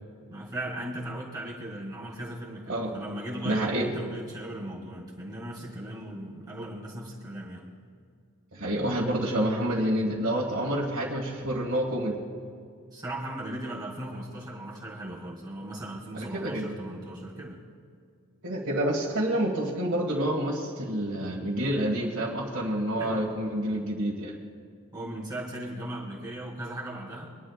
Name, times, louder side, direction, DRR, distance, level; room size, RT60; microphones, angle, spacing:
voice 1, 0.3-7.6 12.9-17.6 23.0-23.2 24.9-27.3, right 1 dB, 20° right, -5 dB, 2.5 m, -37 dB
voice 2, 3.4-3.9 8.5-12.2 16.1-16.7 18.4-24.3, right 1 dB, 60° right, -6 dB, 1.9 m, -28 dB
24.0 x 11.5 x 2.5 m, 2.3 s
head